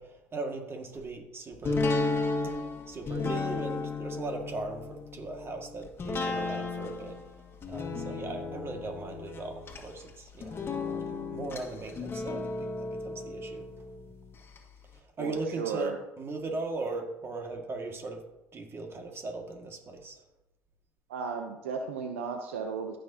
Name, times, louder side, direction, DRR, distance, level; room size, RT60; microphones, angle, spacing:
voice 1, 0.0-1.9 2.4-2.5 2.9-7.2 7.7-10.6 10.9-12.7 13.0-13.7 15.2-18.2 18.5-20.2, right 3 dB, 35° right, 3 dB, 2.1 m, -38 dB
sound 1, 1.6-14.6 15.0-15.1, left 3 dB, 35° left, 1.8 m, -34 dB
voice 2, 15.2-16.0 21.1-23.0, right 6 dB, 90° right, 5 dB, 0.8 m, -35 dB
15.0 x 6.6 x 2.9 m, 0.90 s
hypercardioid pair, 70°, 7 cm